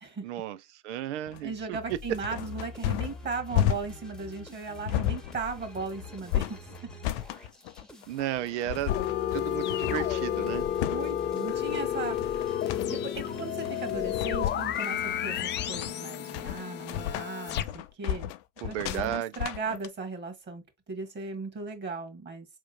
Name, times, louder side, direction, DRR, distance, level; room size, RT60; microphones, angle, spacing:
voice 1, 0.2-2.0 8.1-8.9 9.3-10.7 18.6-19.4, right 12 dB, 80° right, 0.7 m, -34 dB
sound 1, 1.3-19.9, left 11 dB, 70° left, 0.7 m, -33 dB
voice 2, 1.4-6.6 10.9-12.5 12.9-18.3 18.6-22.5, right 4 dB, 30° right, 2.0 m, -37 dB
sound 2, 1.9-16.2, left 2 dB, ahead, 1.1 m, -47 dB
sound 3, 8.9-17.6, left 11 dB, 30° left, 0.5 m, -31 dB
4.8 x 3.7 x 2.6 m
hypercardioid pair, 95°, 34 cm